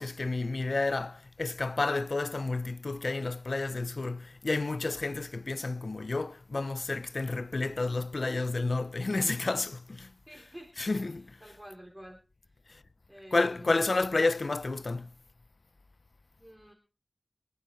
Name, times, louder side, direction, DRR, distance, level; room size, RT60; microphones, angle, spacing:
voice 1, 0.0-10.1 10.8-11.4 12.7-12.8 13.3-15.1, left 3 dB, 65° left, 0.8 m, -30 dB
voice 2, 10.3-10.8 11.2-12.2 12.4-12.6 13.1-13.9 16.4-16.7, equal, 10° right, 3.5 m, -49 dB
26.5 x 11.5 x 3.2 m
wide cardioid pair, 65°, 0 cm